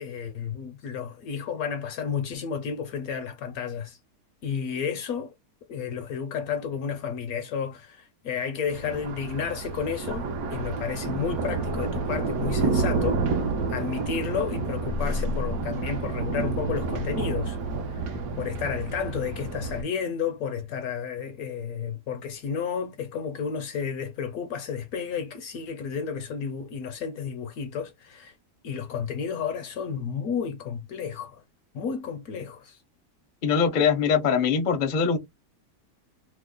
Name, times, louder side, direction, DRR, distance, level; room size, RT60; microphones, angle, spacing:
voice 1, 0.0-4.0 4.4-5.3 5.7-13.3 13.7-17.6 17.9-28.3 28.6-31.4 31.7-32.8, left 7 dB, 70° left, 1.0 m, -32 dB
Thunder, 8.6-19.8, right 3 dB, 70° right, 1.0 m, -29 dB
voice 2, 33.4-35.2, left 6 dB, 45° left, 0.6 m, -22 dB
3.1 x 2.0 x 3.6 m
omnidirectional pair, 1.8 m